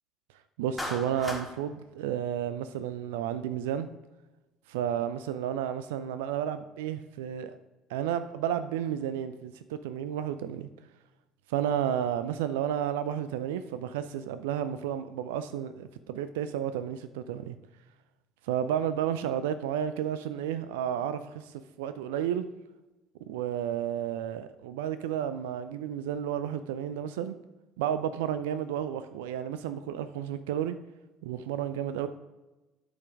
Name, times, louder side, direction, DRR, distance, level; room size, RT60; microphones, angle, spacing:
voice 1, 0.6-3.9 4.7-7.6 7.9-10.7 11.5-17.6 18.4-22.4 23.3-27.4 27.8-30.8 31.2-32.1, right 9 dB, 70° right, 12 dB, 0.3 m, -32 dB
Clapping, 0.8-1.5, left 1 dB, 5° left, 1.8 m, -35 dB
12.0 x 5.2 x 3.5 m, 1.1 s
figure-of-eight pair, 55°, 0 cm